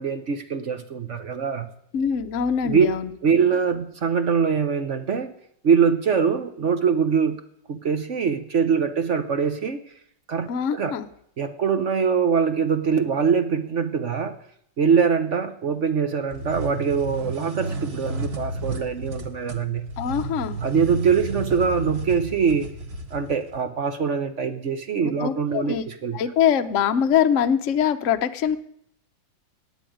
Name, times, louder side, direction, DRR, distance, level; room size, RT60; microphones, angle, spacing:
voice 1, 0.0-1.7 2.6-2.9 3.2-5.3 5.6-7.4 7.7-9.8 10.3-11.0 11.4-14.4 14.8-19.9 20.6-22.7 23.1-26.2, right 6 dB, 50° right, 9 dB, 0.9 m, -23 dB
voice 2, 1.9-3.1 10.5-11.1 20.0-20.6 25.0-25.8 26.1-28.6, left 8 dB, 55° left, 8 dB, 0.9 m, -23 dB
sound 1, 16.3-23.6, right 2 dB, 35° right, 1.4 m, -32 dB
12.5 x 9.3 x 9.2 m, 0.70 s
omnidirectional pair, 2.2 m